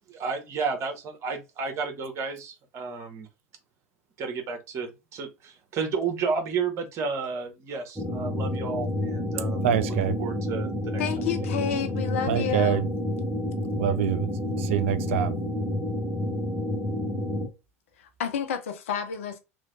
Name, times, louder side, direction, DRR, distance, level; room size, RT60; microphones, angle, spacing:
voice 1, 0.1-3.2 4.2-9.9 10.2-11.0, right 5 dB, 40° right, 1.1 m, -32 dB
sound 1, 8.0-17.5, left 1 dB, 10° right, 1.0 m, -29 dB
voice 2, 9.6-10.2 12.3-12.9 13.8-14.3 14.6-15.3, right 10 dB, 60° right, 0.4 m, -25 dB
voice 3, 11.0-12.8 18.0-19.4, left 8 dB, 65° left, 0.7 m, -30 dB
3.1 x 3.1 x 2.6 m
figure-of-eight pair, 75°, 8 cm